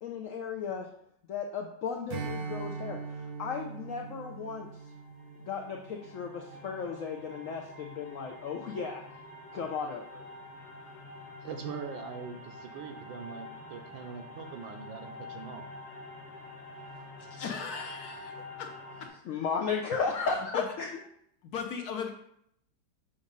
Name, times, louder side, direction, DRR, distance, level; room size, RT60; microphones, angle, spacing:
voice 1, 0.0-0.9 1.3-3.0 3.4-4.7 5.4-9.0 9.5-10.2 19.3-21.0, left 5 dB, 85° left, 2 dB, 0.7 m, -35 dB
Strum, 2.1-6.9, right 4 dB, 65° right, 1.1 m, -41 dB
sound 1, 3.7-19.1, left 2 dB, 50° left, 1.3 m, -47 dB
voice 2, 11.4-15.7, right 6 dB, 85° right, 4 dB, 1.5 m, -42 dB
voice 3, 17.2-18.7 19.0-19.1 20.5-20.7 21.4-22.1, left 7 dB, 65° left, 3 dB, 1.0 m, -37 dB
7.1 x 2.6 x 5.3 m, 0.70 s
omnidirectional pair, 2.1 m